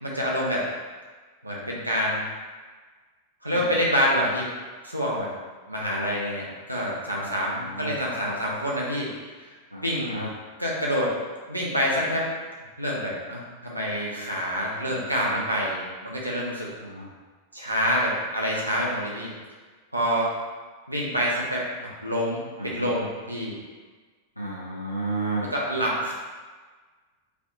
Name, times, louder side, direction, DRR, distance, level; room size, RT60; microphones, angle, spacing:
voice 1, 0.0-0.7 1.4-2.3 3.4-4.5 4.8-5.3 5.7-9.1 9.4-9.5 9.8-10.1 10.6-11.1 11.5-12.3 12.8-16.7 17.5-19.3 19.9-20.3 20.9-23.5 25.4-26.1, equal, 85° right, -4 dB, 0.6 m, -27 dB
voice 2, 7.2-7.9 9.7-10.3 14.8-15.0 15.3-15.4 16.8-17.1 22.6-22.9 24.4-25.4, right 2 dB, 90° left, -6 dB, 0.4 m, -33 dB
3.4 x 2.5 x 2.4 m, 1.4 s
figure-of-eight pair, 90°, 0 cm